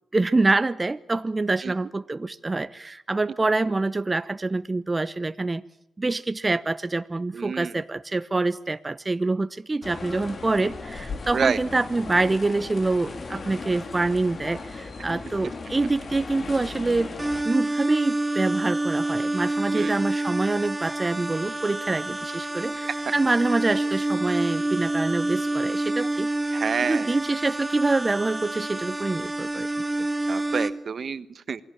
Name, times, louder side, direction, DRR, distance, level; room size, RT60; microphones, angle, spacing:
voice 1, 0.1-5.6 6.0-17.1 17.4-26.3 26.8-29.7, right 3 dB, 30° right, 12 dB, 1.0 m, -26 dB
voice 2, 7.3-7.7 11.3-11.6 19.7-20.0 26.5-27.2 30.3-31.6, right 6 dB, 60° right, 14 dB, 1.4 m, -28 dB
sound 1, 9.8-17.4, left 4 dB, 50° left, 3.1 m, -37 dB
sound 2, 17.2-30.7, right 2 dB, 15° right, 3.4 m, -28 dB
28.0 x 21.0 x 8.9 m, 0.79 s
hypercardioid pair, 40°, 0 cm